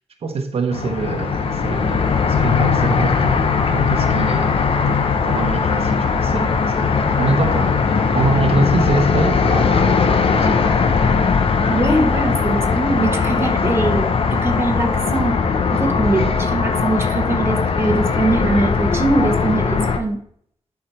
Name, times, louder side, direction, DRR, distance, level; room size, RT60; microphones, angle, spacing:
voice 1, 0.2-4.6 4.9-7.7 8.1-10.6 13.3-13.5, right 4 dB, 65° right, 1.0 m, -25 dB
sound 1, 0.7-20.0, left 5 dB, 55° left, 0.9 m, -19 dB
voice 2, 11.7-14.0 14.3-15.4 15.7-20.2, right 2 dB, 20° right, 1.1 m, -22 dB
11.0 x 4.8 x 4.3 m
wide cardioid pair, 170°, 11 cm